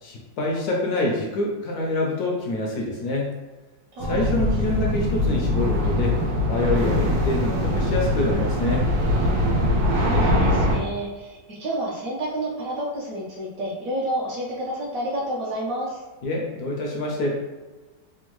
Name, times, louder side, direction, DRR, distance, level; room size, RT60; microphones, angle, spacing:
voice 1, 0.0-3.3 4.0-6.2 6.5-8.9 16.2-17.3, left 2 dB, 70° left, -1 dB, 1.0 m, -26 dB
voice 2, 4.0-4.4 10.0-16.0, right 1 dB, 65° right, -6 dB, 0.9 m, -30 dB
sound 1, 4.0-10.8, left 1 dB, 80° right, 1.3 m, -22 dB
3.5 x 2.2 x 2.9 m, 1.2 s
omnidirectional pair, 1.9 m